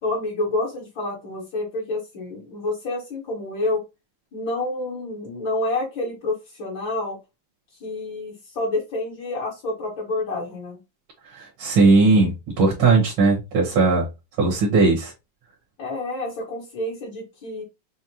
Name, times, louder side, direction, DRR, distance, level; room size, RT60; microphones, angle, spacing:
voice 1, 0.0-3.8 4.3-7.2 7.8-10.8 15.8-17.6, left 2 dB, 65° left, 2.2 m, -28 dB
voice 2, 11.4-14.1 14.4-15.1, right 3 dB, 70° right, 2.1 m, -18 dB
6.3 x 2.1 x 2.8 m
omnidirectional pair, 2.3 m